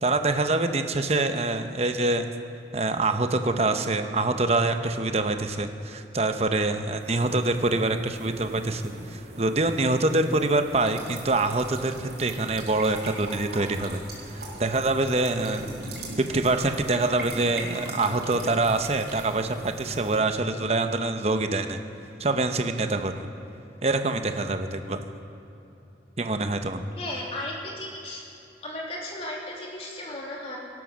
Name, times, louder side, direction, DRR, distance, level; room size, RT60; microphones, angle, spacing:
voice 1, 0.0-2.3 2.7-14.0 14.3-15.8 16.2-21.8 22.2-23.1 23.8-25.0 26.2-26.9, right 2 dB, 35° right, 7 dB, 0.8 m, -25 dB
sound 1, 7.0-20.2, right 1 dB, 85° right, 3.7 m, -44 dB
sound 2, 10.6-19.3, right 3 dB, 60° right, 4.4 m, -41 dB
voice 2, 27.0-28.2 28.6-30.6, left 1 dB, 30° left, -3 dB, 2.7 m, -35 dB
18.0 x 11.0 x 6.3 m, 2.9 s
head